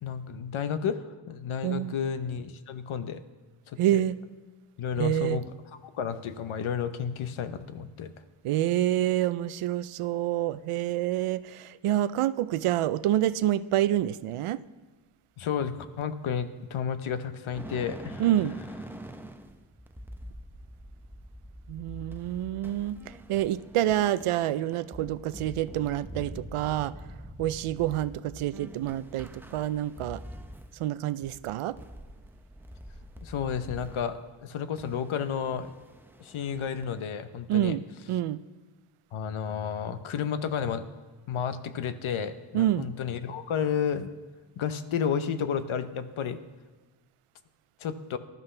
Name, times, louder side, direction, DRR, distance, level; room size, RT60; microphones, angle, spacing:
voice 1, 0.0-3.2 3.7-4.0 4.8-5.5 5.8-8.1 15.4-18.2 33.2-35.7 36.2-37.8 39.1-40.8 41.3-44.1 44.6-46.4 47.8-48.2, left 7 dB, 70° left, 10 dB, 1.0 m, -32 dB
voice 2, 1.6-1.9 3.8-4.2 5.0-5.4 8.4-14.6 18.2-18.6 21.7-26.9 27.4-30.2 30.8-31.8 37.5-37.8 38.1-38.4 42.5-42.9, right 13 dB, 80° right, 16 dB, 0.6 m, -27 dB
sound 1, 17.5-30.9 31.1-34.2 34.8-37.0, equal, 5° right, 0.7 m, -45 dB
19.0 x 12.0 x 3.3 m, 1.3 s
cardioid pair, 95°, 50 cm